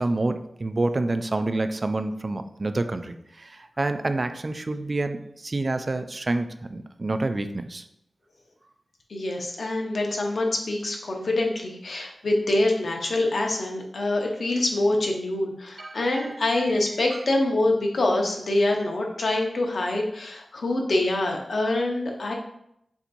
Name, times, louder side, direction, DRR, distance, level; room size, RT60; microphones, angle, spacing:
voice 1, 0.0-7.9 15.8-16.4 17.1-17.2, right 2 dB, 45° right, 9 dB, 0.3 m, -28 dB
voice 2, 9.1-22.3, left 2 dB, 70° left, 1 dB, 0.9 m, -25 dB
7.1 x 2.7 x 2.6 m, 0.76 s
wide cardioid pair, 65°, 0 cm